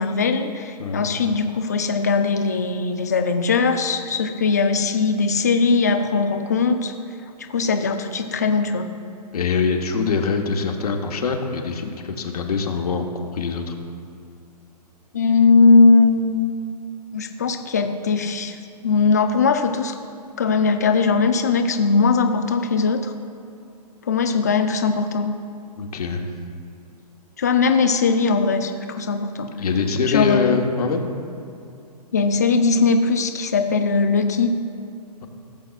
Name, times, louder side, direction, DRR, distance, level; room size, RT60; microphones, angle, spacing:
voice 1, 0.0-6.9 7.5-8.9 15.1-16.5 17.1-18.6 18.8-19.9 20.4-23.1 24.1-25.3 27.4-29.5 30.1-30.6 32.1-34.5, left 4 dB, 25° left, 7 dB, 0.3 m, -19 dB
voice 2, 9.3-13.0 13.3-13.7 25.8-26.2 29.6-31.0, left 5 dB, 70° left, 4 dB, 1.1 m, -23 dB
16.0 x 7.5 x 2.4 m, 2.6 s
hypercardioid pair, 170°, 21 cm